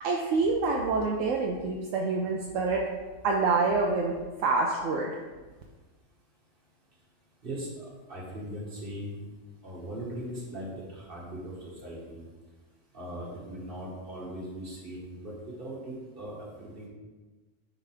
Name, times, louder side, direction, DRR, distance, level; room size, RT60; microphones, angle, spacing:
voice 1, 0.0-2.9 3.2-5.1, right 3 dB, 75° right, 0 dB, 1.0 m, -27 dB
voice 2, 7.4-9.2 9.6-12.2 12.9-16.3 16.6-16.9, right 1 dB, 45° right, -5 dB, 1.9 m, -39 dB
10.0 x 3.7 x 3.4 m, 1.3 s
omnidirectional pair, 1.4 m